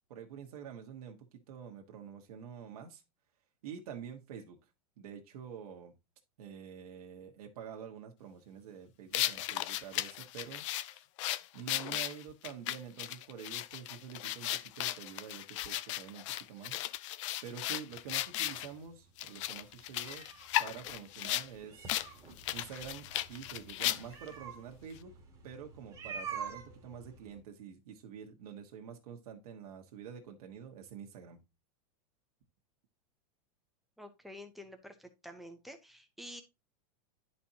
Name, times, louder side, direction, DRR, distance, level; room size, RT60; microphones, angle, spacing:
voice 1, 0.1-3.0 3.6-4.6 5.0-5.9 6.4-10.6 11.5-16.8 17.4-20.3 20.6-21.9 22.5-25.1 25.4-31.4, right 8 dB, 70° right, 1.3 m, -47 dB
sound 1, 9.1-18.7 19.2-21.5 21.9-22.1 22.4-24.3, left 15 dB, 50° left, 0.4 m, -36 dB
sound 2, 17.9-27.4, right 6 dB, 15° right, 1.5 m, -48 dB
voice 2, 34.0-36.4, left 1 dB, ahead, 0.7 m, -49 dB
11.0 x 4.3 x 2.8 m
supercardioid pair, 155°, 20 cm